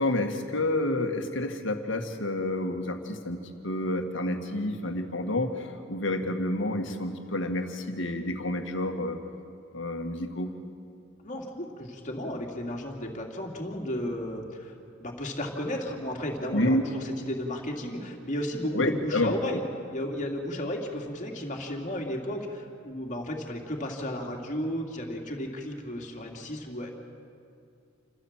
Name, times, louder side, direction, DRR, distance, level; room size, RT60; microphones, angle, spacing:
voice 1, 0.0-9.2 9.7-10.5 16.5-16.8 18.7-19.3, left 1 dB, 70° left, 4 dB, 1.9 m, -29 dB
voice 2, 11.2-14.7 15.0-19.6 19.9-26.9, left 1 dB, 40° left, 1 dB, 2.7 m, -33 dB
28.0 x 15.0 x 7.5 m, 2.4 s
head